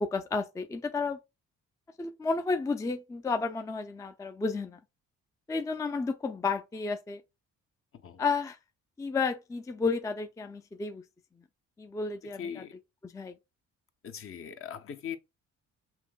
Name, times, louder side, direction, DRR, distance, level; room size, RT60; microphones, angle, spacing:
voice 1, 0.0-1.2 2.0-4.8 5.5-7.2 8.2-8.6 9.0-11.0 11.8-12.6 13.0-13.4, left 4 dB, 10° left, 0.4 m, -32 dB
voice 2, 12.4-12.8 14.0-15.2, left 8 dB, 45° left, 0.7 m, -40 dB
5.7 x 2.6 x 2.3 m
cardioid pair, 90°, 30 cm